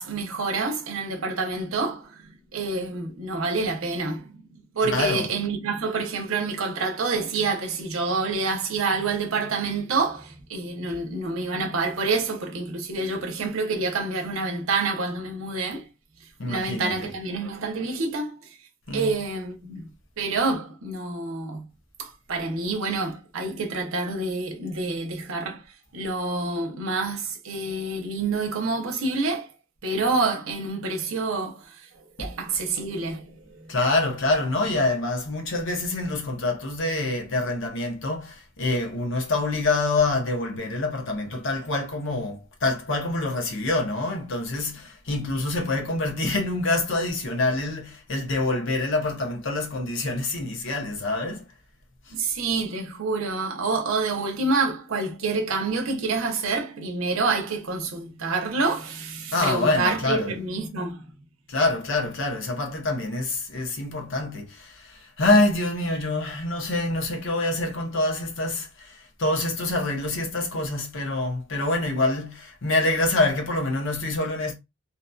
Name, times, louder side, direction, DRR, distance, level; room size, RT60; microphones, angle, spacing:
voice 1, 0.0-4.4 4.7-15.9 16.4-18.4 18.9-19.8 20.2-21.7 22.0-25.6 25.9-29.5 29.8-31.9 32.2-33.3 52.1-61.0, right 3 dB, 75° right, 0.7 m, -27 dB
voice 2, 4.8-5.3 16.4-17.1 18.9-19.2 32.2-32.3 33.7-51.5 52.1-52.2 59.3-60.3 61.5-74.5, left 2 dB, 65° left, 0.8 m, -26 dB
2.8 x 2.6 x 2.2 m
head